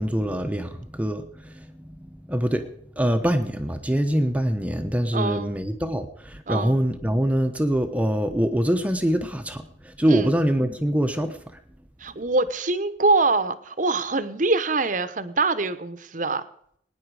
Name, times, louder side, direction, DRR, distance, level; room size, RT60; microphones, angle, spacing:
voice 1, 0.0-2.7 3.0-11.4, equal, 10° right, 7 dB, 0.9 m, -24 dB
voice 2, 5.1-5.5 6.5-6.8 10.1-10.3 12.0-16.4, right 3 dB, 45° right, 12 dB, 1.0 m, -24 dB
20.5 x 10.0 x 4.9 m, 0.68 s
head